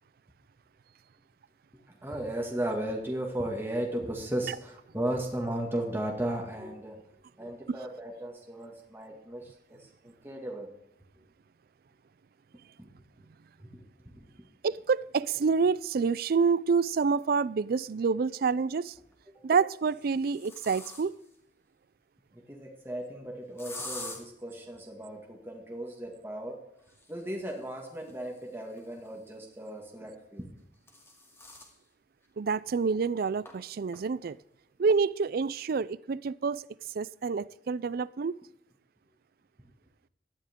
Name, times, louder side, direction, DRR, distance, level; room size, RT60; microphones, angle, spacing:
voice 1, 1.9-7.0 7.4-10.7 12.8-12.9 13.6-13.8 14.1-14.3 19.3-19.4 22.3-26.6 27.1-30.5, right 1 dB, 15° right, 2.1 m, -36 dB
voice 2, 14.6-18.9 19.4-21.2 32.4-34.4 34.8-36.7 36.9-38.4, right 5 dB, 55° right, 0.4 m, -28 dB
sound 1, 17.2-17.3 18.7-19.2 19.8-21.3 23.6-24.2 26.8-29.4 30.4-31.8 32.2-32.3 32.7-32.8 33.4-33.5 33.9-34.3, left 2 dB, 15° left, 2.6 m, -46 dB
17.5 x 13.0 x 3.7 m
head